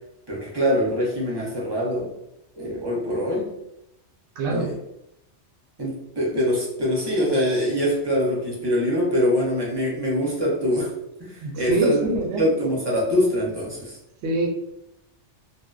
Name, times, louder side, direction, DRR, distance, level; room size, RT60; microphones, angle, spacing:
voice 1, 0.3-2.1 2.5-3.5 4.5-4.8 5.8-10.9 11.2-12.0 12.4-14.0, equal, 30° right, -3 dB, 0.5 m, -24 dB
voice 2, 4.4-4.7 11.4-12.4 14.2-14.5, right 2 dB, 70° right, -2 dB, 0.8 m, -24 dB
2.6 x 2.0 x 2.3 m, 0.83 s
omnidirectional pair, 1.2 m